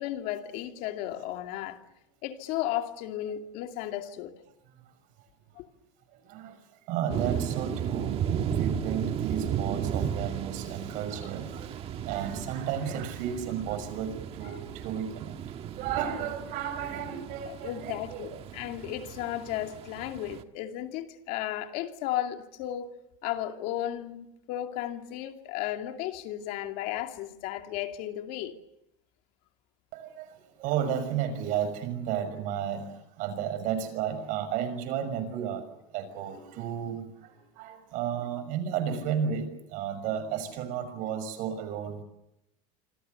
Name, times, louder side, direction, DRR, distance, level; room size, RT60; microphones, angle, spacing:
voice 1, 0.0-1.8 2.2-4.3 5.6-5.7 17.5-22.9 23.2-28.6, left 12 dB, 65° left, 2.6 m, -34 dB
voice 2, 6.1-6.6 6.9-8.2 8.4-15.4 15.7-18.4 29.9-35.7 35.9-42.0, right 8 dB, 60° right, 6.2 m, -33 dB
sound 1, 7.1-20.4, right 9 dB, 40° right, 1.5 m, -34 dB
27.0 x 26.5 x 6.8 m
cardioid pair, 145°, 16 cm